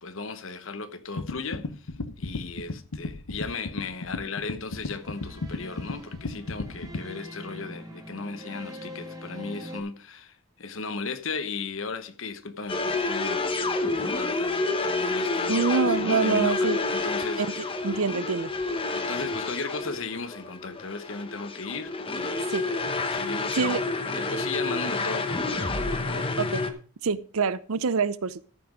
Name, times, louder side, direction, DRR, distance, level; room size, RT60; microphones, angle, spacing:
voice 1, 0.0-1.9 2.2-13.8 14.1-17.6 18.9-22.8 23.1-23.8 24.0-26.3, left 4 dB, 60° left, 1.0 m, -36 dB
sound 1, 1.2-7.1, left 3 dB, 90° left, 0.9 m, -34 dB
sound 2, 4.7-9.8, equal, 15° right, 1.8 m, -43 dB
sound 3, 12.7-26.7, left 3 dB, 25° left, 0.9 m, -29 dB
voice 2, 15.5-16.8 17.4-18.5 22.5-22.6 23.5-23.8 26.4-26.6 27.0-28.4, right 5 dB, 70° right, 0.6 m, -26 dB
14.0 x 6.0 x 5.1 m
head